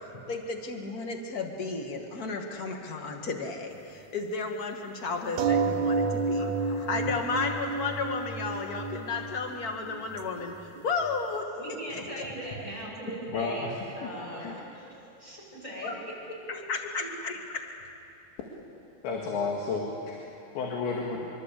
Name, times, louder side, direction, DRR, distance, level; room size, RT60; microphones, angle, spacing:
voice 1, 0.3-12.5 15.8-16.0 16.5-17.7, left 4 dB, 40° left, 3 dB, 1.2 m, -33 dB
sound 1, 5.4-10.5 10.8-11.1, right 4 dB, 75° right, 1.7 m, -30 dB
voice 2, 11.5-14.9 15.2-15.9 17.0-17.1, right 1 dB, 15° left, -4 dB, 7.9 m, -39 dB
voice 3, 13.3-13.7 14.0-14.1 14.4-14.6 18.4-18.5 19.0-20.2 20.6-21.3, left 4 dB, 85° left, -1 dB, 4.5 m, -31 dB
25.0 x 24.5 x 8.4 m, 2.6 s
omnidirectional pair, 5.0 m